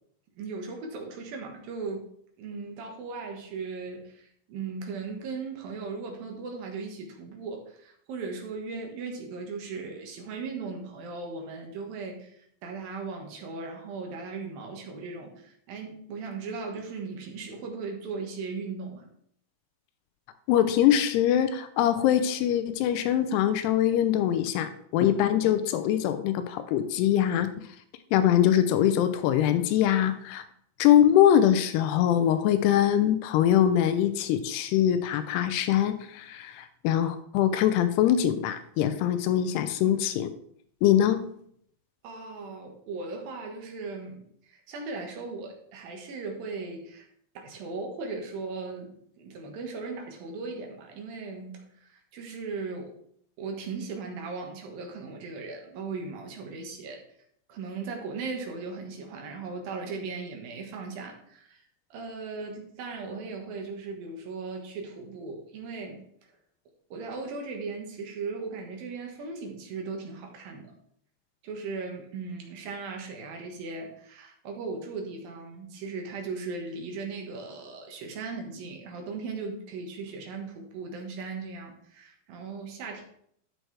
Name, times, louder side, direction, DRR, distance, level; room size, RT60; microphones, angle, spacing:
voice 1, 0.4-2.1 2.4-19.1 42.0-47.1 47.3-52.9 53.4-57.0 57.5-61.7 61.9-66.0 66.9-70.7 71.4-83.0, right 4 dB, 70° right, 2 dB, 2.9 m, -38 dB
voice 2, 20.5-27.5 28.1-30.4 30.8-40.3 40.8-41.2, left 10 dB, 90° left, 10 dB, 2.7 m, -23 dB
12.5 x 6.2 x 3.3 m, 0.68 s
omnidirectional pair, 4.6 m